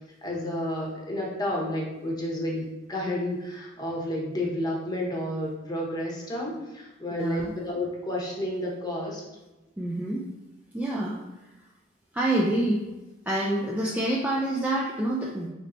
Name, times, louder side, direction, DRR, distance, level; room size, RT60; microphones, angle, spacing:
voice 1, 0.2-9.2, left 1 dB, 20° left, -3 dB, 0.8 m, -31 dB
voice 2, 7.2-7.5 9.8-10.2 10.7-11.2 12.1-12.8 13.3-15.5, right 1 dB, 10° right, -4 dB, 0.3 m, -27 dB
4.3 x 3.1 x 2.6 m, 1.1 s
head